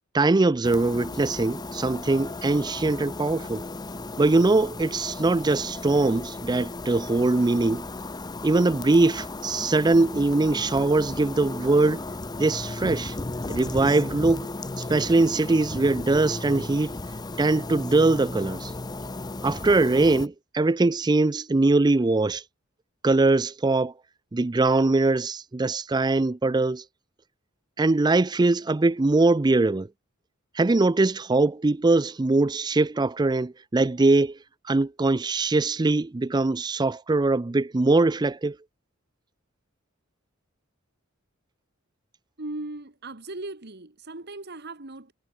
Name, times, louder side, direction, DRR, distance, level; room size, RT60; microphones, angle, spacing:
voice 1, 0.1-3.6 4.2-7.8 8.4-12.0 12.4-13.2 13.5-14.5 14.9-17.0 17.4-18.7 19.4-22.4 23.0-23.9 24.3-26.8 27.8-29.9 30.6-34.4 34.7-38.6, right 2 dB, 20° right, 0.4 m, -22 dB
sound 1, 0.6-20.3, left 2 dB, 20° left, 0.6 m, -35 dB
voice 2, 42.4-45.1, right 2 dB, 55° right, 2.2 m, -38 dB
head